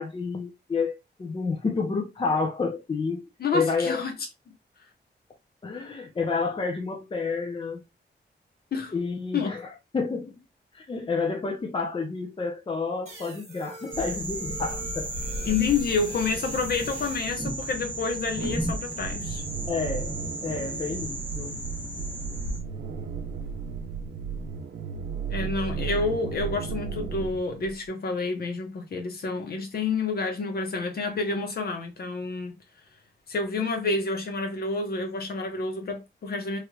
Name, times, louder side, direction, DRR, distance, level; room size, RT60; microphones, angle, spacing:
voice 1, 0.0-3.3 3.5-4.0 5.6-7.8 8.9-9.6 9.9-10.3 10.7-15.1 19.7-21.6, left 4 dB, 30° left, 0.6 m, -29 dB
voice 2, 3.4-4.1 8.7-8.9 9.3-9.5 15.4-19.4 25.3-32.5 33.3-36.6, left 4 dB, 60° left, 0.9 m, -29 dB
sound 1, 13.1-17.4, right 2 dB, 35° right, 1.3 m, -45 dB
sound 2, 13.9-22.6, right 1 dB, 10° right, 1.0 m, -34 dB
sound 3, 19.0-27.8, right 6 dB, 90° right, 0.6 m, -35 dB
3.2 x 3.0 x 2.3 m
wide cardioid pair, 155°, 18 cm